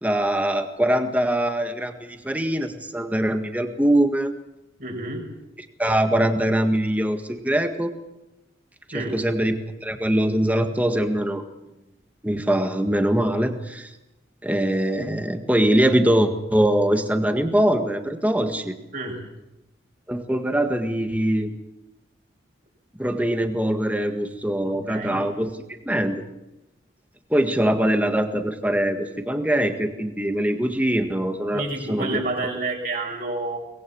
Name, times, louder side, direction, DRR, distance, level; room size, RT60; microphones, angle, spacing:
voice 1, 0.0-4.3 5.8-7.9 8.9-11.4 12.2-13.9 14.4-18.7 20.1-21.5 23.0-25.5 25.8-26.2 27.3-32.1, right 1 dB, 10° right, 6 dB, 1.8 m, -22 dB
voice 2, 4.8-5.3 8.9-9.2 18.9-19.2 24.6-25.2 31.5-33.6, right 2 dB, 50° right, 1 dB, 6.2 m, -29 dB
23.5 x 21.0 x 7.2 m, 0.97 s
head